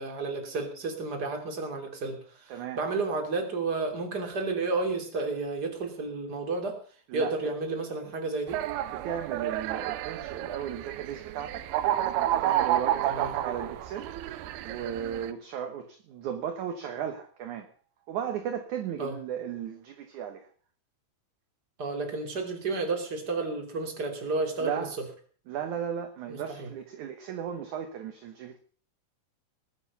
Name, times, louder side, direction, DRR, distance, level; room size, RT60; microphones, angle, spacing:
voice 1, 0.0-2.5 2.8-6.8 7.1-8.6 13.1-13.3 19.0-19.1 21.8-24.8 26.3-26.7, right 3 dB, 25° right, 3.2 m, -31 dB
voice 2, 2.5-2.8 7.1-7.3 8.9-11.7 12.3-14.1 14.4-17.7 18.1-20.5 24.6-24.9 25.5-28.6, right 9 dB, 65° right, 2.3 m, -35 dB
sound 1, 8.5-15.3, right 12 dB, 90° right, 2.8 m, -30 dB
19.5 x 9.8 x 5.5 m
omnidirectional pair, 4.4 m